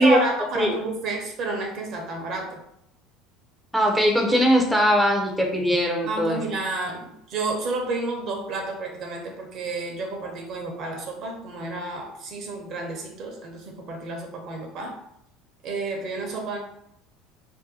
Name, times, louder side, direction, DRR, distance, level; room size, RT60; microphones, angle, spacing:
voice 1, 0.0-2.6 6.0-15.0 15.6-16.6, right 2 dB, 55° right, 2 dB, 0.8 m, -31 dB
voice 2, 3.7-6.4, equal, ahead, 0 dB, 0.6 m, -20 dB
2.7 x 2.1 x 3.9 m, 0.76 s
supercardioid pair, 100°, 0 cm